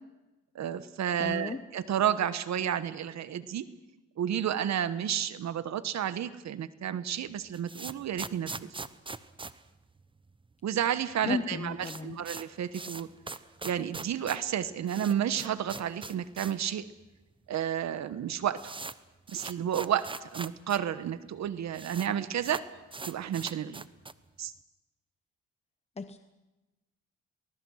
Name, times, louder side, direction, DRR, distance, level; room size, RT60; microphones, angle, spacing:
voice 1, 0.5-3.7 4.2-8.5 10.6-13.1 13.6-16.9 17.5-18.7 19.3-22.7 23.1-23.8 24.4-24.5, right 9 dB, 65° right, 13 dB, 1.2 m, -31 dB
voice 2, 1.2-1.6 11.3-12.2 26.0-26.2, left 4 dB, 20° left, 10 dB, 1.0 m, -34 dB
sound 1, 7.3-10.5 10.8-10.9 11.1-11.2 11.5-16.7 17.0-17.1 17.8-17.9 18.1-20.8 21.1-21.2 21.4-22.1 22.4-24.3, right 3 dB, 15° right, 0.9 m, -42 dB
23.5 x 20.5 x 6.4 m, 1.1 s
cardioid pair, 90°, 30 cm